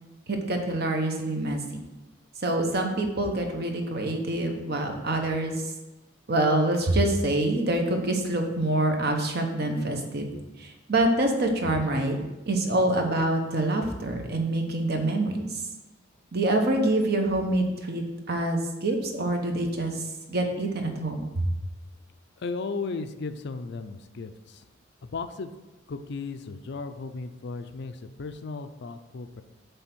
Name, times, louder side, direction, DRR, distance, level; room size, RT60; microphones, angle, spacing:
voice 1, 0.3-1.6 2.4-5.5 6.3-12.2 12.5-15.6 16.3-20.0 20.3-21.5, right 1 dB, 50° right, 3 dB, 1.0 m, -26 dB
voice 2, 22.4-24.6 25.0-25.5 25.9-29.4, left 4 dB, 55° left, 10 dB, 0.4 m, -35 dB
8.1 x 3.5 x 6.0 m, 1.0 s
head